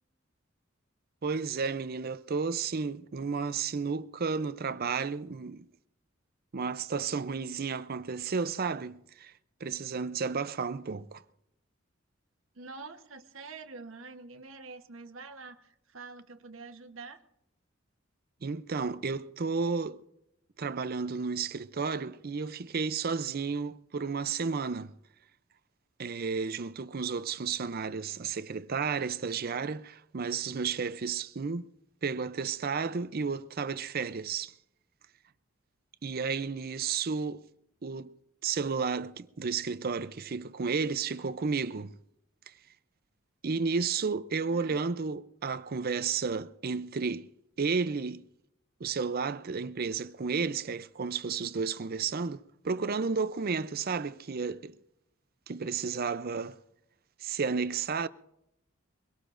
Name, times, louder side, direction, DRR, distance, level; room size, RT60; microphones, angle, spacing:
voice 1, 1.2-5.7 6.5-9.3 9.6-11.2 18.4-20.0 20.6-24.9 26.0-31.7 32.0-34.5 36.0-37.4 37.8-38.1 38.4-41.9 42.5-42.6 43.4-47.3 47.6-48.2 48.8-54.8 55.5-56.6 57.2-58.1, right 5 dB, 45° right, 0.5 m, -32 dB
voice 2, 12.5-17.2 44.5-44.8, right 4 dB, 75° right, 1.1 m, -46 dB
23.0 x 18.0 x 2.6 m
head